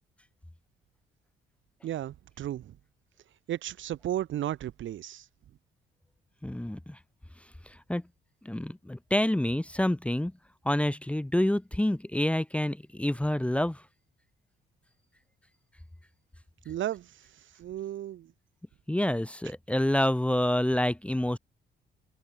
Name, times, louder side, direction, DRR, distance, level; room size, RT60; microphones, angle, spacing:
voice 1, 1.8-2.8 3.5-5.2 16.7-17.1 17.6-18.3, right 12 dB, 75° right, 2.2 m, -34 dB
voice 2, 6.4-7.0 7.7-8.0 8.4-10.3 10.6-13.8 18.9-21.4, left 1 dB, 5° left, 1.3 m, -27 dB
cardioid pair, 90°, 20 cm